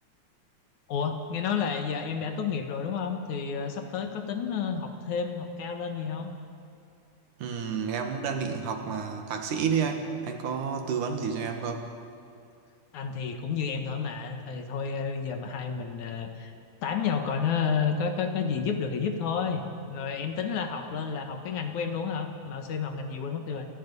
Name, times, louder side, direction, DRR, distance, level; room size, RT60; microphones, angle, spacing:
voice 1, 0.9-6.3 12.9-16.5 16.8-23.7, left 6 dB, 75° left, 5 dB, 2.9 m, -31 dB
voice 2, 7.4-11.8, right 6 dB, 85° right, 5 dB, 3.2 m, -30 dB
27.0 x 19.0 x 5.5 m, 2.6 s
omnidirectional pair, 3.5 m